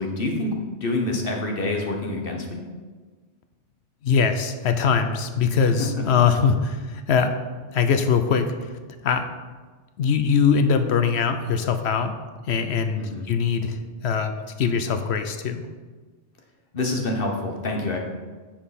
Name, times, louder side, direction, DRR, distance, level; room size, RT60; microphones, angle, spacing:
voice 1, 0.0-2.6 5.8-6.0 12.9-13.3 16.7-18.0, left 2 dB, 55° left, 1 dB, 1.5 m, -27 dB
voice 2, 4.0-7.4 7.7-8.7 9.0-9.3 10.0-12.1 12.5-15.6, left 6 dB, 75° left, 8 dB, 0.9 m, -22 dB
8.8 x 7.3 x 4.2 m, 1.4 s
omnidirectional pair, 1.1 m